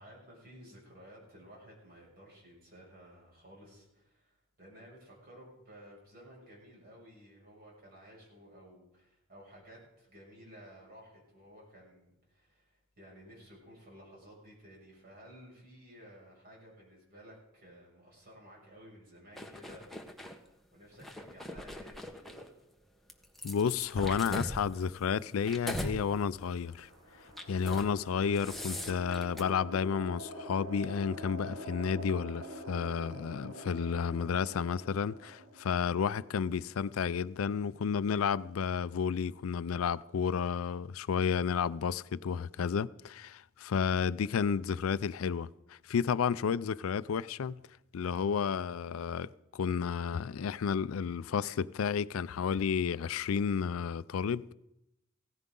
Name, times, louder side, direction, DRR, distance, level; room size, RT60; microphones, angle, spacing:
voice 1, 0.0-20.2 20.7-22.4, equal, 50° right, 6.5 m, -55 dB
sound 1, 19.4-20.4 20.9-22.5 23.1-26.0 26.4-26.7 27.3-27.9 28.2-29.4, left 1 dB, ahead, 1.1 m, -41 dB
voice 2, 23.4-26.9 27.5-47.6 47.9-54.5, left 6 dB, 90° left, 0.4 m, -31 dB
sound 2, 26.5-36.9, equal, 85° right, 3.4 m, -46 dB
16.5 x 14.5 x 3.8 m
head